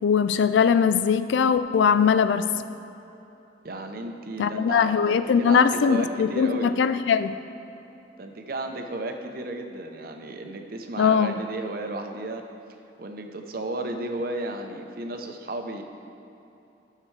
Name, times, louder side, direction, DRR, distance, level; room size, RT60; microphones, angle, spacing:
voice 1, 0.0-2.5 4.4-7.3 11.0-11.4, left 6 dB, 75° left, 12 dB, 0.3 m, -21 dB
voice 2, 3.6-6.7 8.2-12.4 13.0-15.8, right 2 dB, 50° right, 4 dB, 0.7 m, -33 dB
13.0 x 6.6 x 3.3 m, 2.9 s
head